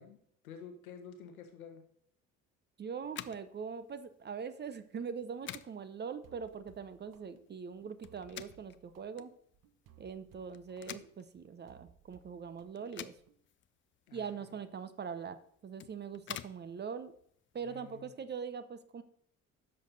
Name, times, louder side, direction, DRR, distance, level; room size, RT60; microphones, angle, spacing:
voice 1, 0.0-1.8 14.1-14.3 17.6-18.1, left 6 dB, 80° left, 6 dB, 1.2 m, -50 dB
voice 2, 2.8-9.3 10.0-13.1 14.1-17.1 17.5-19.0, right 6 dB, 25° right, 13 dB, 0.6 m, -42 dB
sound 1, 3.0-18.0, left 11 dB, 30° left, 0.4 m, -51 dB
sound 2, 6.2-13.4, right 10 dB, 50° right, 0.9 m, -63 dB
10.0 x 6.5 x 3.9 m, 0.68 s
figure-of-eight pair, 50°, 42 cm